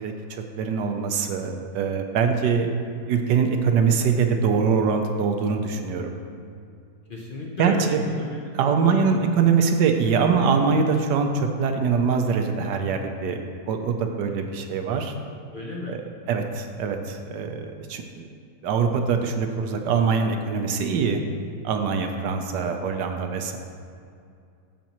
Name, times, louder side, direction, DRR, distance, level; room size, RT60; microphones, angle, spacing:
voice 1, 0.0-2.7 3.1-6.2 7.6-8.0 8.5-13.4 13.7-15.1 15.9-16.0 16.3-18.3 18.6-21.2 21.6-23.6, right 5 dB, 80° right, 5 dB, 1.3 m, -23 dB
voice 2, 7.1-9.2 15.5-16.3 22.6-22.8, left 2 dB, 55° left, -2 dB, 0.5 m, -34 dB
14.5 x 5.2 x 3.0 m, 2.4 s
omnidirectional pair, 1.9 m